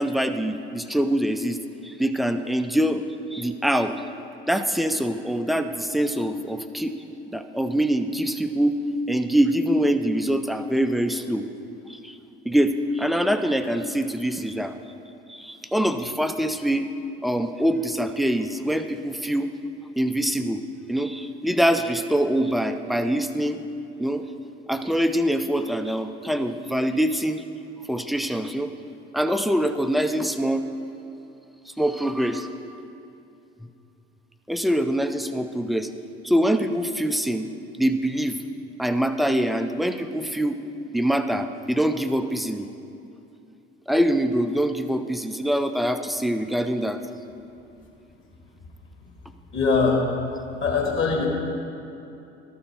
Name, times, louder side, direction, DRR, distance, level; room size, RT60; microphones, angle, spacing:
voice 1, 0.0-3.0 3.3-4.0 4.5-7.0 7.3-8.8 9.1-11.5 11.9-12.2 12.5-14.7 15.3-16.9 17.2-19.5 20.0-20.6 20.9-23.6 24.0-24.2 24.7-27.4 27.9-28.7 29.1-30.6 31.8-32.5 34.5-35.9 36.2-37.5 37.8-38.4 38.8-40.6 40.9-42.7 43.9-47.0, equal, ahead, 8 dB, 0.4 m, -24 dB
voice 2, 49.5-50.0 50.6-51.3, left 4 dB, 40° left, 0 dB, 1.9 m, -21 dB
12.5 x 6.6 x 4.5 m, 2.8 s
figure-of-eight pair, 55°, 31 cm